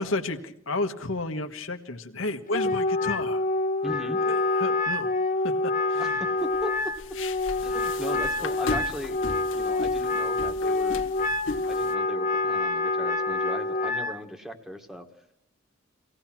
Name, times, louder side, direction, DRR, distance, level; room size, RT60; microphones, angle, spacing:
voice 1, 0.0-3.4 4.3-5.1 5.4-6.1, left 2 dB, 90° left, 7 dB, 1.5 m, -32 dB
Wind instrument woodwind instrument, 2.5-14.2, left 2 dB, 40° left, 0.8 m, -27 dB
voice 2, 3.8-4.2 6.0-6.9 7.6-9.2 9.5-11.0 11.7-15.1, equal, 5° right, 5 dB, 1.7 m, -38 dB
sound 1, 6.4-11.9, left 3 dB, 70° left, 1.4 m, -37 dB
24.0 x 17.5 x 6.1 m, 0.78 s
head